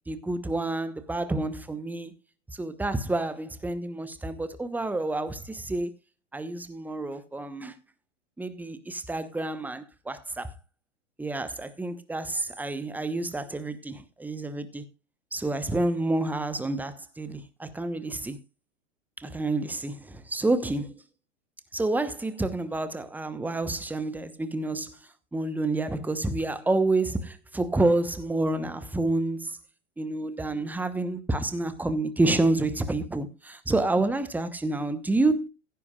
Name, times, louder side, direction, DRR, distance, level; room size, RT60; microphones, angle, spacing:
voice 1, 0.1-2.1 2.5-5.9 6.3-7.7 8.4-10.5 11.2-14.8 15.3-18.4 19.2-21.0 21.7-25.0 25.3-29.6 30.0-35.5, right 2 dB, 5° right, 1.0 m, -29 dB
16.0 x 10.5 x 2.4 m
figure-of-eight pair, 100°, 38 cm